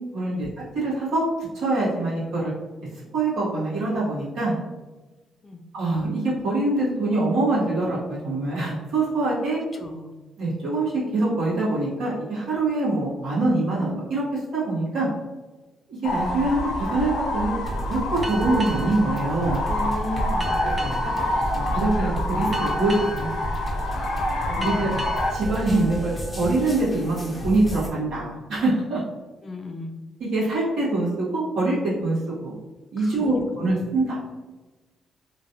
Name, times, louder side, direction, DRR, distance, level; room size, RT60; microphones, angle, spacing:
voice 1, 0.1-0.5 0.7-2.5 3.1-4.5 5.7-9.6 10.4-15.1 15.9-17.5 17.9-19.6 20.6-20.7 21.0-21.1 21.5-23.3 24.6-24.9 25.3-29.0 30.2-32.6 32.9-34.2, right 2 dB, 75° right, -8 dB, 1.5 m, -24 dB
voice 2, 9.7-10.1 19.7-21.1 24.5-25.1 29.4-30.0 33.0-33.4 33.8-33.9, left 2 dB, 30° left, 6 dB, 0.4 m, -35 dB
sound 1, 16.0-25.3, left 1 dB, 85° left, 0.6 m, -27 dB
sound 2, 17.6-27.9, equal, 15° left, 0.9 m, -32 dB
sound 3, 18.2-27.4, right 3 dB, 35° right, 0.5 m, -39 dB
3.1 x 2.5 x 2.8 m, 1.2 s
cardioid pair, 90°, 0 cm